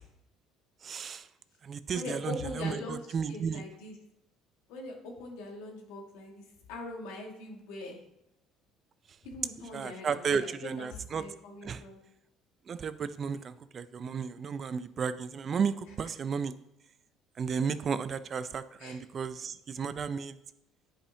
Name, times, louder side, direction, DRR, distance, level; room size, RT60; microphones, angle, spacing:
voice 1, 0.8-1.2 1.6-3.6 9.7-11.2 11.6-11.8 12.7-16.5 17.4-20.4, right 6 dB, 45° right, 13 dB, 0.5 m, -33 dB
voice 2, 1.9-3.0 3.3-3.9 4.7-6.4 6.7-8.0 9.2-12.0 18.8-19.0, left 2 dB, 80° left, 1 dB, 1.7 m, -41 dB
10.0 x 5.0 x 2.8 m, 0.82 s
supercardioid pair, 80°, 0 cm